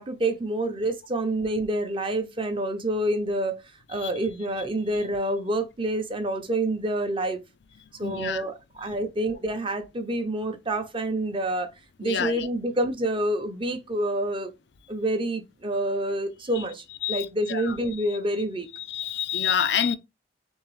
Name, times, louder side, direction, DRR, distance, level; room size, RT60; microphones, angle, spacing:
voice 1, 0.0-3.6 3.9-7.4 8.0-11.7 12.0-14.5 14.9-18.7, right 1 dB, 30° right, 0.7 m, -27 dB
voice 2, 8.0-8.4 8.9-9.0 12.0-12.5 16.5-16.6 17.0-17.8 18.1-18.2 18.7-20.0, left 8 dB, 70° left, 0.5 m, -28 dB
3.5 x 3.4 x 3.2 m
head